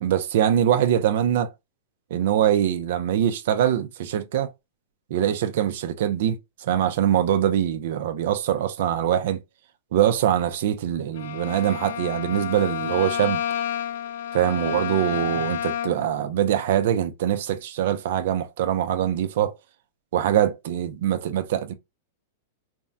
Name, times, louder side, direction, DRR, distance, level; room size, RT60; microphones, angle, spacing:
voice 1, 0.0-1.5 2.1-4.5 5.1-9.4 9.9-13.4 14.3-19.5 20.1-21.7, right 10 dB, 50° right, 0.4 m, -23 dB
Bowed string instrument, 11.1-16.1, left 9 dB, 60° left, 0.5 m, -30 dB
3.4 x 2.1 x 2.5 m
supercardioid pair, 180°, 0 cm